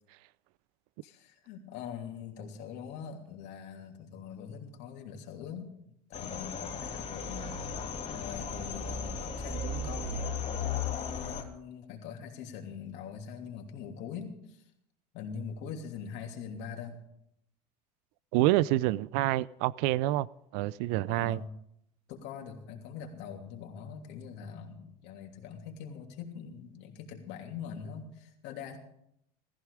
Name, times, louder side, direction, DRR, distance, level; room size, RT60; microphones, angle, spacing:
voice 1, 1.0-5.7 6.1-7.5 8.1-10.3 10.6-14.6 15.1-17.0 21.1-21.5 22.1-28.8, left 7 dB, 60° left, 3.0 m, -43 dB
sound 1, 6.1-11.4, left 4 dB, 30° left, 2.9 m, -36 dB
voice 2, 18.3-20.3 20.5-21.4, right 16 dB, 65° right, 0.5 m, -27 dB
15.5 x 14.5 x 4.9 m
hypercardioid pair, 95°, 20 cm